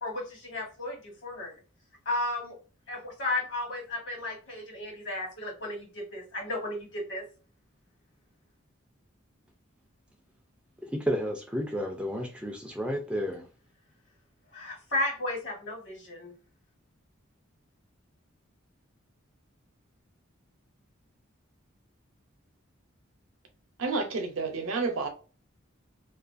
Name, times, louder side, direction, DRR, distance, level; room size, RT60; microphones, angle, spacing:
voice 1, 0.0-1.5 2.0-2.6 2.9-7.2 14.5-16.3, left 2 dB, 60° left, 1.2 m, -34 dB
voice 2, 10.9-13.4, equal, 5° right, 0.4 m, -31 dB
voice 3, 23.8-25.1, right 3 dB, 80° right, 0.7 m, -30 dB
2.4 x 2.3 x 2.5 m
head